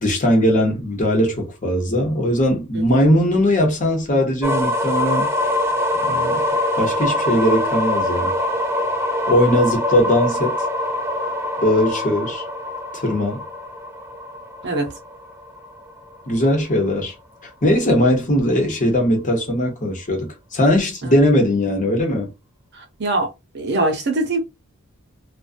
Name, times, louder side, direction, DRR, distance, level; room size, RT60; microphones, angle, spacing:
voice 1, 0.0-5.3 6.1-6.4 6.8-8.3 9.3-10.6 11.6-12.4 13.0-13.4 16.3-17.1 17.6-22.3, left 1 dB, 40° left, 0.9 m, -19 dB
sound 1, 4.4-16.2, left 1 dB, 15° right, 0.4 m, -24 dB
voice 2, 22.8-23.3 23.5-24.4, right 2 dB, 55° right, 0.8 m, -23 dB
2.3 x 2.3 x 2.5 m
head